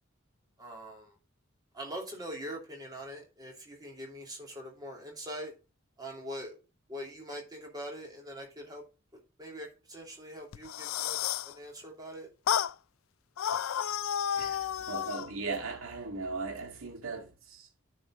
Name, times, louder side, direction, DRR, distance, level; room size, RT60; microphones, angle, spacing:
voice 1, 0.6-1.1 1.7-5.5 6.0-6.5 6.9-8.8 9.4-12.3, equal, 20° right, 2.9 m, -43 dB
sound 1, 10.5-11.5 12.5-12.7 13.4-15.3, left 9 dB, 75° left, 0.4 m, -31 dB
voice 2, 14.4-17.8, right 4 dB, 80° right, 2.1 m, -38 dB
9.6 x 4.2 x 6.1 m
head